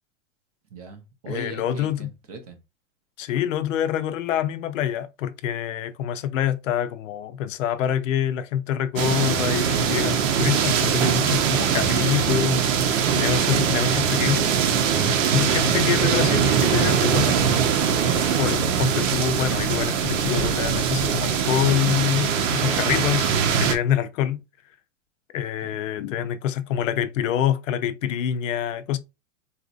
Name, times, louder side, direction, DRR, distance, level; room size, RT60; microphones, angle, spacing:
voice 1, 0.7-2.6 25.6-25.8, right 3 dB, 30° right, 0.5 m, -40 dB
voice 2, 1.3-2.1 3.2-12.7 13.1-14.5 15.3-17.6 18.4-24.4 25.3-29.0, left 10 dB, 80° left, 0.6 m, -26 dB
sound 1, 9.0-23.8, right 7 dB, 80° right, 0.8 m, -22 dB
4.1 x 2.5 x 2.5 m
supercardioid pair, 180°, 38 cm